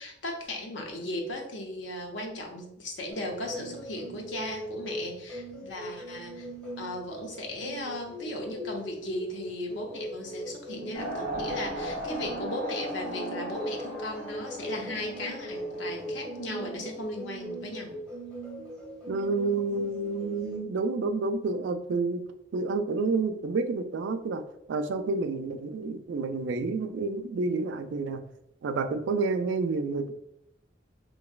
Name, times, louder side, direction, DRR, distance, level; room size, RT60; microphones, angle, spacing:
voice 1, 0.0-6.5 6.8-17.9, left 1 dB, 70° left, 2 dB, 0.6 m, -37 dB
sound 1, 3.1-20.6, equal, 5° left, 0.6 m, -40 dB
sound 2, 10.9-17.0, right 1 dB, 40° left, 1.0 m, -38 dB
voice 2, 19.1-22.2 22.5-24.4 24.7-28.2 28.6-30.1, right 3 dB, 70° right, 8 dB, 0.3 m, -29 dB
3.0 x 2.6 x 2.3 m, 0.80 s
head